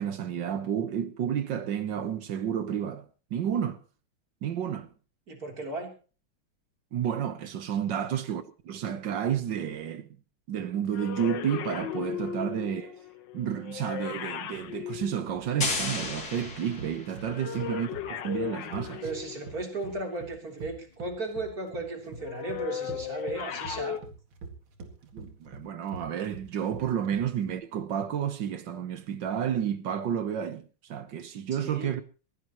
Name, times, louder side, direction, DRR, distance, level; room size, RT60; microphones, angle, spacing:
voice 1, 0.0-3.0 3.3-3.8 4.4-4.9 6.9-10.1 10.5-13.0 13.3-19.0 25.1-32.0, right 9 dB, 65° right, 1.6 m, -31 dB
voice 2, 5.3-5.9 17.4-17.7 19.0-24.0 31.6-32.0, right 2 dB, 45° right, 3.9 m, -36 dB
sound 1, 10.9-15.9 17.2-19.8 22.2-24.0, left 9 dB, 65° left, 1.6 m, -36 dB
sound 2, 14.6-27.5, right 4 dB, 80° right, 3.0 m, -45 dB
sound 3, 15.6-17.4, left 3 dB, 45° left, 3.3 m, -33 dB
22.0 x 16.0 x 3.0 m
omnidirectional pair, 2.3 m